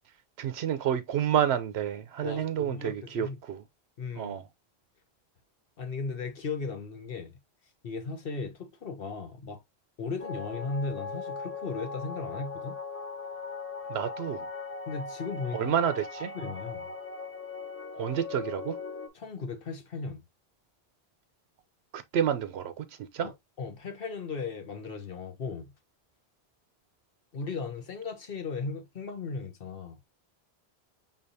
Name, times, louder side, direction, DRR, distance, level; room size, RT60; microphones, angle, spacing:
voice 1, 0.4-3.6 4.2-4.5 13.9-14.5 15.5-16.3 17.9-18.8 21.9-23.3, right 9 dB, 80° right, 0.8 m, -29 dB
voice 2, 2.2-3.4 4.0-4.4 5.8-7.4 7.8-9.6 10.0-12.8 14.9-15.7 16.3-16.9 19.1-20.2 23.2-23.3 23.6-25.7 27.3-30.0, left 4 dB, 60° left, 1.2 m, -36 dB
sound 1, 10.2-19.1, left 4 dB, 15° left, 0.5 m, -39 dB
5.6 x 3.4 x 2.6 m
omnidirectional pair, 1.1 m